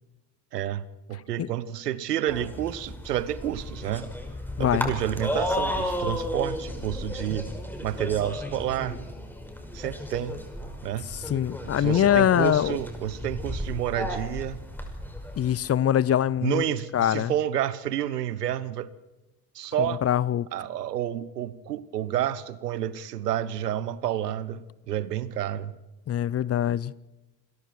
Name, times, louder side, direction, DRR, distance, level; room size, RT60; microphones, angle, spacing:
voice 1, 0.5-4.1 4.6-7.5 7.8-9.0 9.7-10.4 10.8-11.1 11.6-14.6 16.4-18.9 19.5-20.0 20.5-25.8, right 11 dB, 80° right, 1.0 m, -30 dB
sound 1, 2.3-15.5, left 1 dB, 5° left, 5.6 m, -34 dB
voice 2, 4.6-4.9 11.0-12.8 15.4-16.6 16.9-17.3 19.8-20.5 26.1-26.9, left 10 dB, 30° left, 0.7 m, -23 dB
27.5 x 22.5 x 4.7 m
figure-of-eight pair, 55°, 47 cm